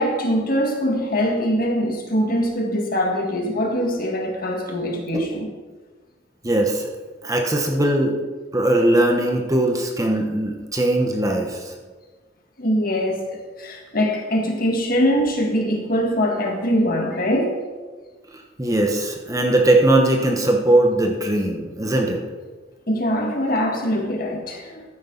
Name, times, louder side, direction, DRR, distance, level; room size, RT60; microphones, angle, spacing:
voice 1, 0.0-5.5 12.6-17.6 22.9-24.9, equal, 50° left, 1.9 m, -22 dB
voice 2, 6.4-6.9 7.2-8.1 8.5-11.7 18.6-22.2, right 1 dB, 20° right, 1.1 m, -20 dB
14.0 x 9.5 x 4.0 m
head